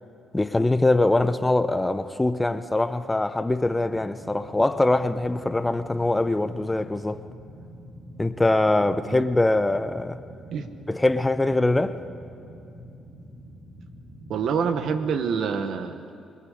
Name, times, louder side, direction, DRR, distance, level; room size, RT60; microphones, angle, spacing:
voice 1, 0.3-7.2 8.2-10.2 10.9-12.0, left 2 dB, 15° left, 0.8 m, -23 dB
sound 1, 3.5-15.2, equal, 45° right, 4.6 m, -45 dB
voice 2, 14.3-16.1, right 6 dB, 70° right, 1.4 m, -27 dB
25.0 x 21.5 x 5.1 m
cardioid pair, 90°, 0 cm